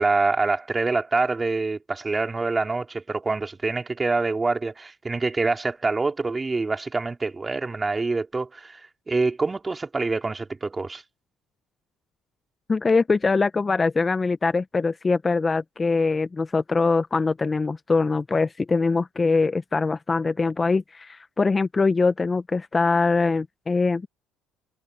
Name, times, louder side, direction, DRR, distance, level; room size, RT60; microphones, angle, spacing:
voice 1, 0.0-11.0, right 3 dB, 25° right, 4.2 m, -25 dB
voice 2, 12.7-24.1, left 4 dB, 25° left, 1.3 m, -23 dB
supercardioid pair, 70°, 0 cm